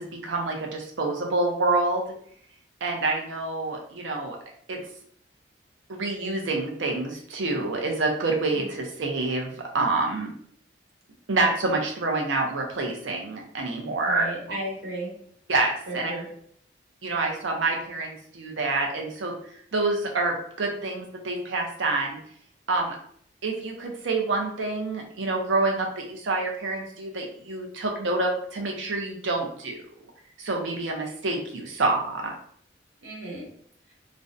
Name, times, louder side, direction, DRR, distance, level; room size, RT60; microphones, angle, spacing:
voice 1, 0.0-2.0 2.8-4.4 4.7-4.8 5.9-10.3 11.3-14.3 15.5-16.1 17.0-19.3 19.7-22.2 22.7-23.0 23.4-29.8 30.4-32.3, right 3 dB, 90° right, 1 dB, 0.6 m, -27 dB
voice 2, 14.0-15.1 15.9-16.3 33.0-33.5, right 1 dB, 70° right, -4 dB, 1.1 m, -34 dB
2.5 x 2.1 x 2.5 m, 0.62 s
head